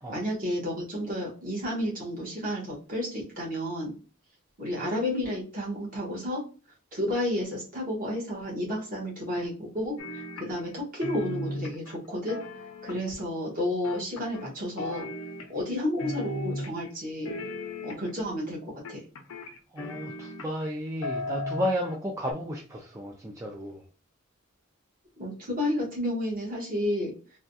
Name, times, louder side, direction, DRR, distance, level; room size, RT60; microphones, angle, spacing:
voice 1, 0.1-4.0 4.6-6.4 6.9-12.4 12.8-15.1 15.5-17.4 17.8-19.0 25.2-27.1, left 1 dB, 40° right, -3 dB, 1.2 m, -31 dB
sound 1, 10.0-10.8 11.0-13.2 13.8-14.5 14.8-15.7 16.0-16.9 17.2-18.2 18.8-20.7 21.0-22.0 22.3-22.4, left 1 dB, 80° left, 0.6 m, -36 dB
voice 2, 19.7-23.9, equal, 15° right, -1 dB, 0.3 m, -33 dB
3.5 x 2.3 x 2.6 m, 0.36 s
head